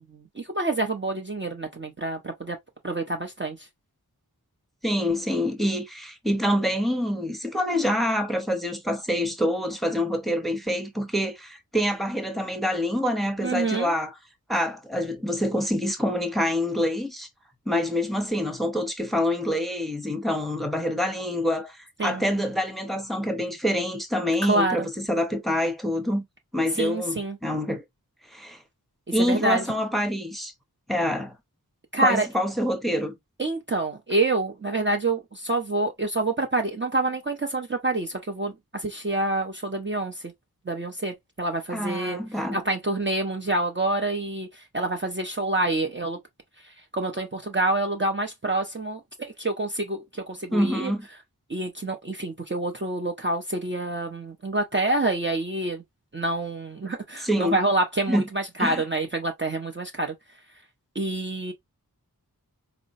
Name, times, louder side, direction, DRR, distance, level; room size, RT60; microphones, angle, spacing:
voice 1, 0.0-2.6 2.8-3.7 13.4-13.9 22.0-22.2 24.4-24.9 26.8-27.4 29.2-29.6 31.9-32.3 33.4-40.3 40.7-42.2 42.5-46.2 46.6-50.9 51.5-55.8 56.1-60.1 60.9-61.5, right 2 dB, 30° right, 0.6 m, -27 dB
voice 2, 4.8-14.1 14.5-17.3 17.7-26.2 26.5-27.8 28.3-28.6 29.1-30.5 30.9-31.3 32.0-33.1 41.7-42.6 50.5-51.1 57.2-57.6 58.1-58.3 58.6-58.8, equal, ahead, 0.8 m, -26 dB
4.0 x 2.1 x 2.5 m
wide cardioid pair, 50°, 37 cm